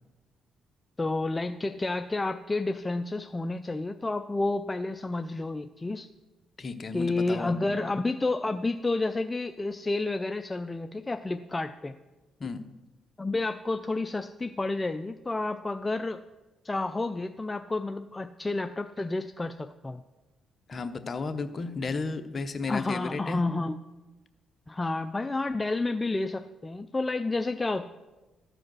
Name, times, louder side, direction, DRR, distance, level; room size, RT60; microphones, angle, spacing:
voice 1, 1.0-6.1 6.9-11.9 13.2-16.2 16.6-20.0 22.7-23.8 24.7-27.9, left 2 dB, 20° left, 9 dB, 0.3 m, -30 dB
voice 2, 6.6-7.9 12.4-12.6 20.7-23.4, left 4 dB, 40° left, 9 dB, 0.8 m, -34 dB
13.5 x 4.9 x 6.2 m, 1.1 s
cardioid pair, 90°, 0 cm